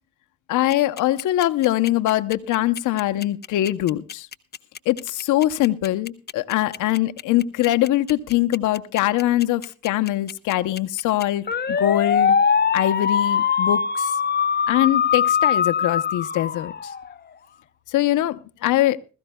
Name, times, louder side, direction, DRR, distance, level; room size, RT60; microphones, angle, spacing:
voice 1, 0.5-4.3 4.9-12.4 12.7-14.1 14.7-16.7 17.9-19.0, left 14 dB, 85° left, 0.8 m, -22 dB
sound 1, 0.7-17.2, left 7 dB, 35° left, 0.9 m, -22 dB
20.5 x 14.0 x 2.2 m
cardioid pair, 90°, 30 cm